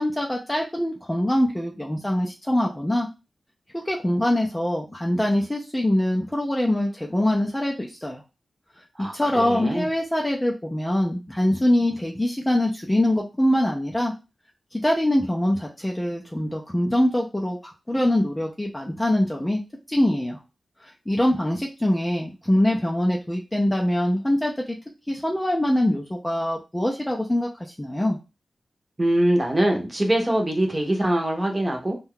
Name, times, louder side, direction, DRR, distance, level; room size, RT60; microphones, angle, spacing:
voice 1, 0.0-3.1 3.7-8.2 9.1-14.1 14.7-19.6 19.9-20.4 20.8-24.8 25.1-28.2, left 1 dB, 10° left, -1 dB, 0.4 m, -23 dB
voice 2, 9.0-9.9 29.0-31.9, right 1 dB, 20° right, 2 dB, 0.7 m, -23 dB
2.7 x 2.2 x 3.6 m, 0.28 s
wide cardioid pair, 145°, 0 cm